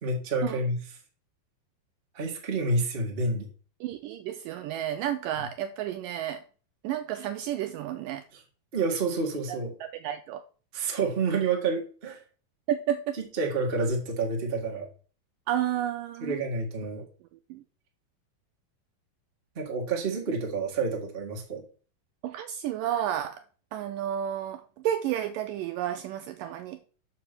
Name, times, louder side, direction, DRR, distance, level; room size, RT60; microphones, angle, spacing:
voice 1, 0.0-0.8 2.1-3.5 8.3-8.4 8.7-9.7 10.7-12.2 13.2-14.9 16.2-17.0 19.5-21.6, right 3 dB, 50° right, 0.7 m, -29 dB
voice 2, 3.8-6.4 6.8-8.2 9.5-10.4 12.7-13.2 15.5-16.4 17.5-17.6 22.2-23.4 23.7-26.8, right 11 dB, 80° right, 1.9 m, -31 dB
6.0 x 5.3 x 6.7 m
omnidirectional pair, 4.3 m